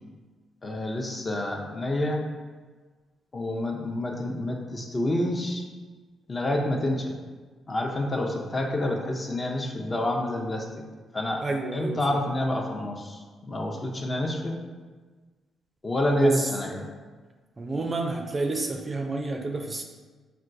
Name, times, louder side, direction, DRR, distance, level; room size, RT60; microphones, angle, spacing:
voice 1, 0.6-2.2 3.3-5.6 6.3-7.2 7.7-10.6 11.1-11.5 11.7-14.6 15.8-16.9, left 1 dB, 35° left, 1 dB, 0.6 m, -28 dB
voice 2, 11.4-12.0 16.2-16.3 17.6-19.8, right 3 dB, 35° right, 3 dB, 0.4 m, -28 dB
4.4 x 2.2 x 2.6 m, 1.4 s
supercardioid pair, 60°, 0 cm